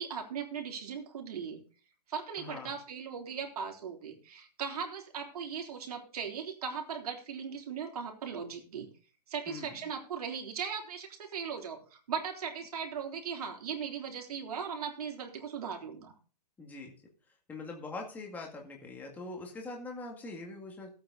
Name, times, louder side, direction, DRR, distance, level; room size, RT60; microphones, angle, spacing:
voice 1, 0.0-1.6 2.1-8.9 9.3-16.1, right 6 dB, 60° right, 3 dB, 3.5 m, -38 dB
voice 2, 2.4-2.7 9.5-9.7 16.6-16.9 17.5-20.9, left 3 dB, 10° left, 1 dB, 2.1 m, -42 dB
15.0 x 8.6 x 4.1 m, 0.39 s
hypercardioid pair, 160°, 21 cm